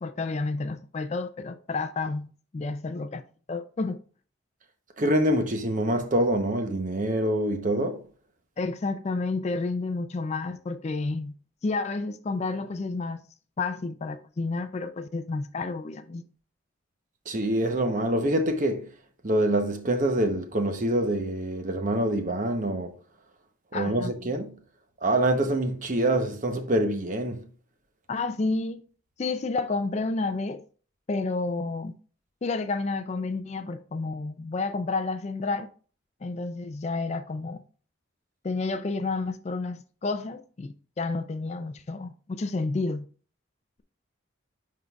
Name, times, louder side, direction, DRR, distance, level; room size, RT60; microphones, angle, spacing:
voice 1, 0.0-3.2 3.5-4.0 8.6-11.3 11.6-13.2 13.6-16.2 23.7-24.1 28.1-28.8 29.2-30.6 31.1-31.9 32.4-35.7 36.2-37.6 38.4-43.1, left 3 dB, 35° left, 0.3 m, -30 dB
voice 2, 5.0-8.0 17.3-18.9 19.2-22.9 23.7-24.5 25.0-27.5, right 1 dB, 40° right, 0.8 m, -25 dB
11.0 x 3.8 x 2.3 m
head